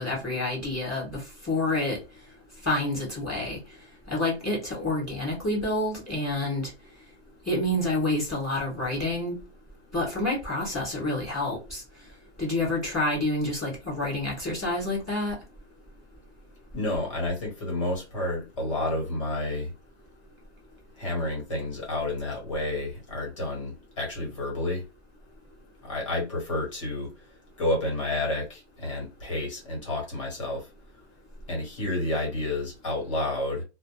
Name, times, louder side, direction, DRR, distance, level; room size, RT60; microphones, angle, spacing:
voice 1, 0.0-2.0 2.6-3.6 4.1-6.7 7.5-9.4 9.9-11.8 12.4-15.4, left 1 dB, ahead, 0.5 m, -28 dB
voice 2, 16.7-19.7 21.0-24.8 25.8-27.3 27.6-30.7 31.5-33.6, left 2 dB, 30° left, 1.0 m, -30 dB
2.2 x 2.1 x 2.9 m
hypercardioid pair, 175°, 33 cm